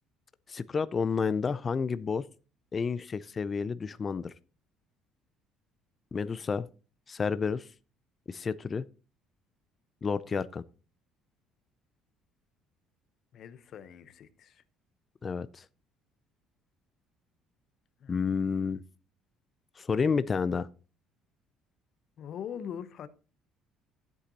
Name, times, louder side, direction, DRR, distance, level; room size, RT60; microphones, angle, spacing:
voice 1, 0.5-2.2 2.7-4.3 6.1-6.7 7.1-7.7 8.3-8.8 10.0-10.6 15.2-15.6 18.1-18.8 19.8-20.7, left 5 dB, 25° left, 0.4 m, -30 dB
voice 2, 13.3-14.6 18.0-18.2 22.2-23.1, left 8 dB, 50° left, 0.8 m, -42 dB
13.0 x 8.2 x 2.8 m
cardioid pair, 140°, 0 cm